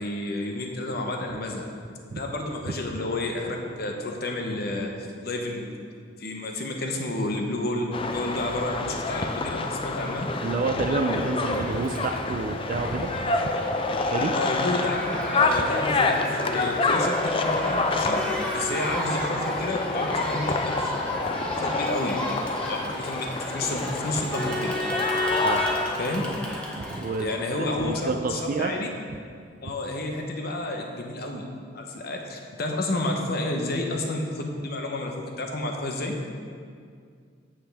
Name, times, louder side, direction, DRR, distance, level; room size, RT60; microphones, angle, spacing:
voice 1, 0.0-1.7 2.1-5.7 6.2-10.3 14.3-15.0 15.3-18.2 18.5-20.9 21.5-22.2 22.6-24.8 26.0-26.2 27.2-28.9 29.6-31.5 31.7-36.2, left 2 dB, 55° left, 2 dB, 0.9 m, -30 dB
sound 1, 7.9-26.3, left 3 dB, 30° left, 0.4 m, -28 dB
voice 2, 10.4-13.6 14.1-14.4 25.4-25.6 26.8-28.7, right 3 dB, 45° right, 5 dB, 0.4 m, -29 dB
Crowd, 10.9-28.1, left 1 dB, 5° left, 0.9 m, -34 dB
sound 2, 14.1-20.3, equal, 25° right, 1.2 m, -37 dB
8.6 x 7.4 x 3.4 m, 2.2 s
head